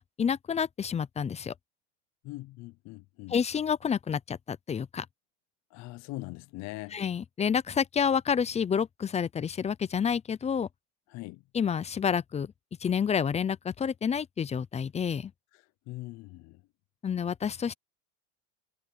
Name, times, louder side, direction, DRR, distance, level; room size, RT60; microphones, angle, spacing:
voice 1, 0.0-1.5 3.3-5.1 6.9-10.7 11.5-12.5 12.8-15.3 17.0-17.7, left 7 dB, 20° left, 0.6 m, -29 dB
voice 2, 2.2-3.4 5.7-7.0 11.1-11.4 15.9-16.6, left 20 dB, 60° left, 0.7 m, -41 dB
supercardioid pair, 120°, 31 cm